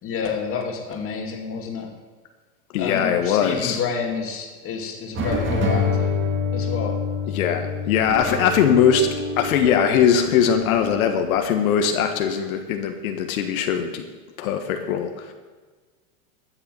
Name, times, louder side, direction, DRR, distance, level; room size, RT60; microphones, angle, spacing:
voice 1, 0.0-1.9 2.8-6.1 6.5-7.0 8.3-8.4, left 6 dB, 30° left, 2 dB, 2.3 m, -29 dB
voice 2, 2.7-3.8 7.3-14.1 14.4-15.3, left 8 dB, 70° left, 5 dB, 1.5 m, -21 dB
sound 1, 5.1-11.3, left 3 dB, 25° right, 2.1 m, -27 dB
13.0 x 6.7 x 7.8 m, 1.4 s
supercardioid pair, 135°, 44 cm